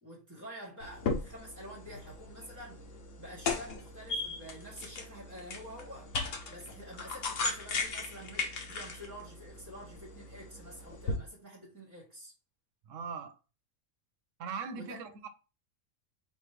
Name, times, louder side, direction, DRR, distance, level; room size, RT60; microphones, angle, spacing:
voice 1, 0.0-2.8 3.2-6.1 6.5-12.3 14.7-15.2, equal, 15° right, 1.1 m, -48 dB
sound 1, 0.8-11.2, left 3 dB, 65° left, 1.3 m, -38 dB
voice 2, 12.9-13.4 14.4-15.3, right 5 dB, 70° right, 1.0 m, -40 dB
4.9 x 3.2 x 3.3 m
omnidirectional pair, 1.4 m